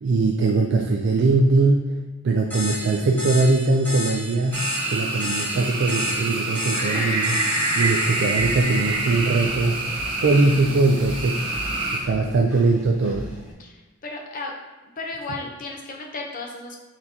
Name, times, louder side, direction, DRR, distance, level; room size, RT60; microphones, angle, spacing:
voice 1, 0.0-2.0 2.2-9.8 10.2-11.5 11.9-13.3, right 3 dB, 55° right, 2 dB, 0.3 m, -21 dB
sound 1, 2.5-9.7, left 2 dB, 10° left, 1.2 m, -33 dB
sound 2, 4.5-12.0, right 2 dB, 25° right, 0.9 m, -26 dB
Engine, 8.3-13.5, equal, 85° left, 1.1 m, -39 dB
voice 2, 13.6-14.5 15.0-16.8, left 3 dB, 40° left, 1 dB, 0.7 m, -35 dB
4.4 x 3.9 x 2.8 m, 1.2 s
head